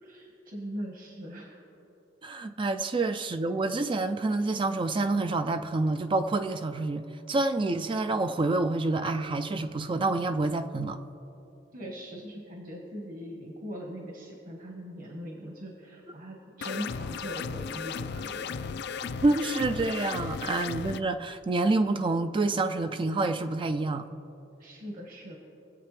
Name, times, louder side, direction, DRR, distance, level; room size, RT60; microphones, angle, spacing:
voice 1, 0.0-1.6 11.7-18.8 20.2-20.5 24.6-25.4, equal, 50° right, -1 dB, 1.5 m, -41 dB
voice 2, 2.2-11.0 19.2-24.1, right 2 dB, 25° right, 9 dB, 0.4 m, -28 dB
sound 1, 16.6-21.0, left 5 dB, 65° left, 0.4 m, -35 dB
24.5 x 8.2 x 3.3 m, 3.0 s
head